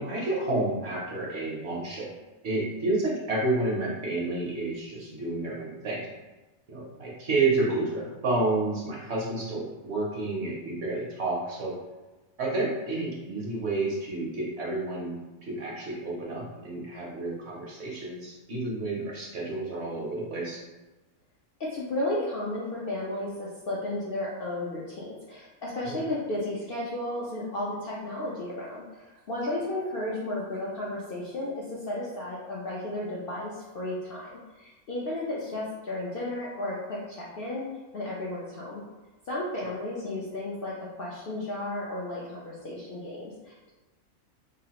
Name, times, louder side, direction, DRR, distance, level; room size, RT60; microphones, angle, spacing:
voice 1, 0.0-2.1 2.4-6.1 6.7-11.7 12.4-15.2 15.5-20.6 25.8-26.0 39.6-39.7, right 2 dB, 60° right, -4 dB, 0.9 m, -30 dB
voice 2, 21.6-34.3 34.6-37.7 37.9-38.8 39.3-43.7, left 1 dB, 60° left, -6 dB, 0.6 m, -33 dB
3.0 x 2.4 x 2.8 m, 1.2 s
omnidirectional pair, 1.5 m